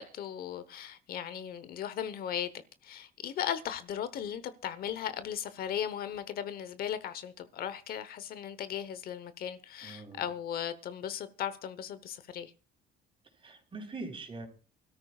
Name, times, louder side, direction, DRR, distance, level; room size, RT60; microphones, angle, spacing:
voice 1, 0.0-2.5 2.8-12.5, left 9 dB, 60° left, 1.0 m, -37 dB
voice 2, 9.8-10.2 13.4-14.5, right 3 dB, 30° right, 3.9 m, -42 dB
25.0 x 13.0 x 2.4 m
cardioid pair, 110°, 17 cm